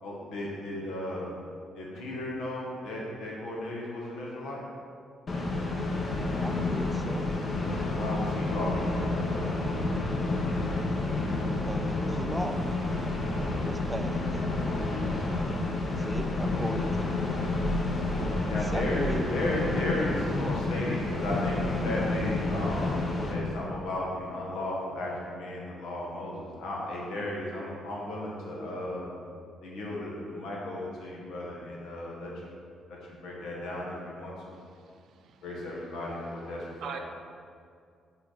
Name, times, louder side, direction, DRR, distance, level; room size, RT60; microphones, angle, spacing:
voice 1, 0.0-1.3 1.7-4.6 7.8-9.6 18.5-29.1 29.6-32.5 32.9-34.6 35.4-37.0, left 1 dB, 85° left, -3 dB, 1.4 m, -35 dB
sound 1, 5.3-23.3, left 2 dB, 45° left, 0.9 m, -29 dB
voice 2, 6.4-7.3 11.4-12.7 13.6-14.4 16.0-17.5 18.6-19.2, right 1 dB, 10° right, 7 dB, 0.4 m, -38 dB
voice 3, 34.5-35.5 36.6-37.0, right 7 dB, 70° right, 5 dB, 0.5 m, -43 dB
5.7 x 4.5 x 4.2 m, 2.3 s
cardioid pair, 90°, 0 cm